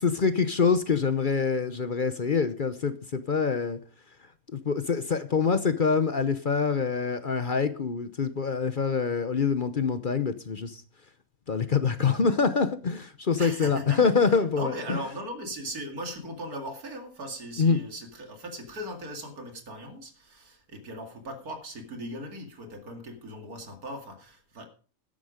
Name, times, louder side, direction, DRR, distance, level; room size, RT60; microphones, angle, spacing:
voice 1, 0.0-3.8 4.5-10.8 11.5-15.0 17.6-17.8, left 5 dB, 40° left, 0.8 m, -25 dB
voice 2, 13.4-14.0 14.2-24.6, right 1 dB, 90° right, 2.8 m, -39 dB
12.5 x 10.5 x 5.1 m
omnidirectional pair, 1.5 m